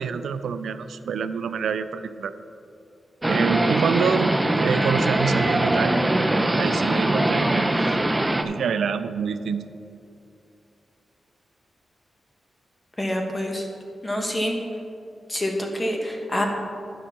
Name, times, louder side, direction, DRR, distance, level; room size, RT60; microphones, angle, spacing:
voice 1, 0.0-2.3 3.3-6.0 6.6-8.0 8.4-9.7, right 6 dB, 85° right, 12 dB, 0.4 m, -27 dB
sound 1, 3.2-8.4, right 1 dB, 15° right, 0.6 m, -22 dB
voice 2, 13.0-13.6 14.0-14.6 15.3-16.4, left 1 dB, 20° left, 1 dB, 1.6 m, -26 dB
10.0 x 5.5 x 5.8 m, 2.6 s
cardioid pair, 65°, 0 cm